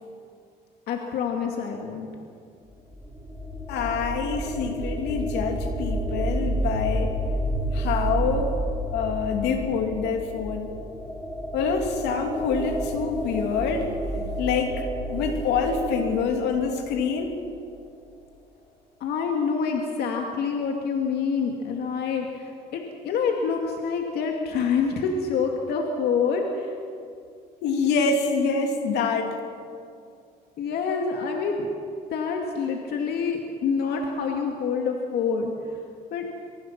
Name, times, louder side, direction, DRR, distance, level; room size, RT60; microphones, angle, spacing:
voice 1, 0.9-2.1 19.0-22.3 22.7-26.7 30.6-31.7 32.1-35.5 36.1-36.3, left 5 dB, 70° left, 2 dB, 2.4 m, -26 dB
sound 1, 2.7-17.5, right 1 dB, ahead, 3.7 m, -30 dB
voice 2, 3.7-7.2 7.7-8.5 8.9-10.7 11.5-13.9 14.4-14.8 15.1-17.4 27.6-29.4, left 5 dB, 85° left, 4 dB, 3.0 m, -26 dB
23.5 x 23.5 x 6.1 m, 2.3 s
cardioid pair, 110°, 17 cm